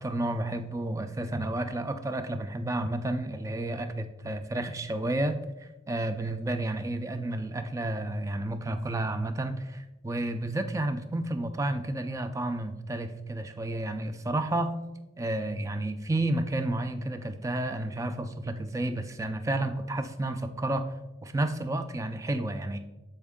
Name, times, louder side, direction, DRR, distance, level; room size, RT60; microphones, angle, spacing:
voice 1, 0.0-14.7 15.2-20.9 21.2-22.8, right 1 dB, 15° right, 8 dB, 0.4 m, -31 dB
7.2 x 4.4 x 3.6 m, 1.1 s
head